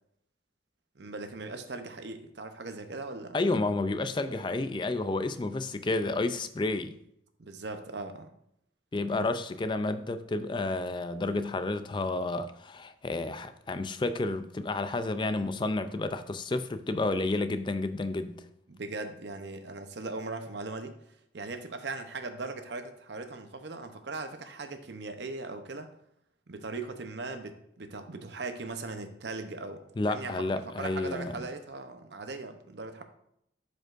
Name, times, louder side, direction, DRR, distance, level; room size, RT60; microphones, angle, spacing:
voice 1, 1.0-3.4 7.4-8.3 18.7-21.0 21.3-25.9 26.5-33.0, right 3 dB, 65° right, 0.8 m, -39 dB
voice 2, 3.3-6.9 8.9-18.4 30.0-31.5, left 2 dB, 25° left, 0.4 m, -31 dB
12.0 x 5.1 x 2.5 m
head